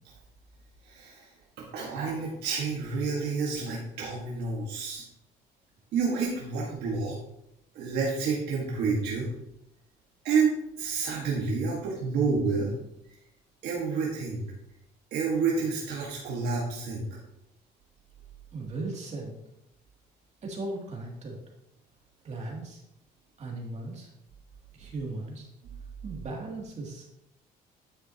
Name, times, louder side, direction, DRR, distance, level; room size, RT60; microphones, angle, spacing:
voice 1, 0.8-1.3 1.6-5.0 5.9-7.1 7.7-9.3 10.2-12.7 13.6-14.5 15.1-17.1 25.6-25.8, right 4 dB, 75° right, -3 dB, 1.7 m, -29 dB
voice 2, 18.5-19.4 20.4-21.4 22.2-22.8 23.4-24.1 24.7-25.5 26.0-27.2, right 2 dB, 40° right, -1 dB, 2.7 m, -37 dB
9.8 x 7.7 x 2.9 m, 0.83 s
cardioid pair, 110°, 17 cm